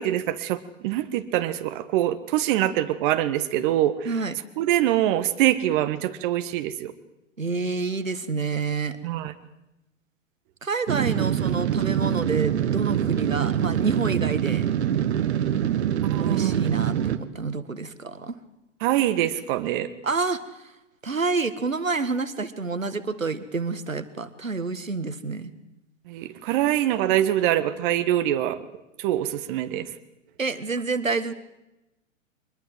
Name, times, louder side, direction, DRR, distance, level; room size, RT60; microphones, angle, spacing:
voice 1, 0.0-4.1 4.6-6.9 9.0-9.3 16.0-16.7 18.8-19.9 26.1-28.6 29.0-29.9, right 12 dB, 40° right, 10 dB, 1.5 m, -24 dB
voice 2, 4.0-4.4 7.4-9.0 10.6-14.7 16.2-18.4 20.0-20.7 21.0-25.5 30.4-31.3, right 4 dB, 90° right, 12 dB, 1.7 m, -28 dB
sound 1, 10.9-17.2, right 10 dB, 60° right, 1.5 m, -24 dB
23.5 x 21.0 x 7.7 m, 0.93 s
figure-of-eight pair, 105°, 38 cm